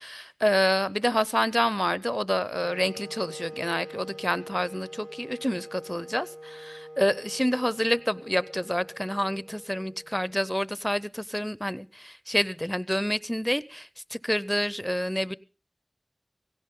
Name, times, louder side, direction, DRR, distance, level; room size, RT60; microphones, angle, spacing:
voice 1, 0.0-15.4, equal, 5° left, 19 dB, 0.6 m, -28 dB
Wind instrument woodwind instrument, 2.6-10.5, equal, 30° right, 0.8 m, -44 dB
17.0 x 17.0 x 3.7 m, 0.34 s
wide cardioid pair, 40°, 0 cm